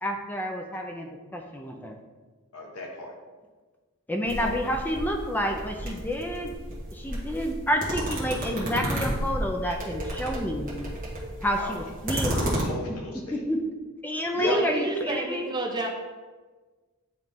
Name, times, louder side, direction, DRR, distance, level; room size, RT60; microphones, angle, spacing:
voice 1, 0.0-1.9 4.1-6.5 6.9-10.7 11.4-12.6 13.3-13.6 14.0-15.5, equal, 10° left, 3 dB, 0.4 m, -29 dB
voice 2, 2.5-3.1 4.4-4.6 11.5-11.7 12.3-13.4 14.3-14.6, left 2 dB, 80° left, 0 dB, 1.2 m, -34 dB
sound 1, 4.2-12.6, right 1 dB, 35° right, 1.5 m, -32 dB
voice 3, 14.5-15.9, right 2 dB, 20° right, 0 dB, 0.8 m, -30 dB
9.1 x 3.1 x 3.5 m, 1.4 s
head